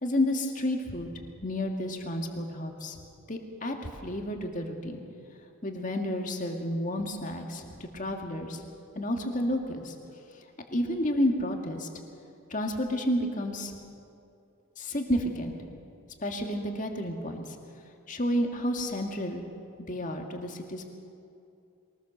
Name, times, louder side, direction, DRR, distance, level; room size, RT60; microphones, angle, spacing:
voice 1, 0.0-1.1 1.4-3.0 3.3-3.8 4.0-5.0 5.6-8.6 9.0-9.9 10.7-11.9 12.5-13.7 14.8-15.6 16.2-17.6 18.1-19.5 19.8-20.8, left 1 dB, 35° left, 3 dB, 2.1 m, -30 dB
23.0 x 19.5 x 6.7 m, 2.6 s
head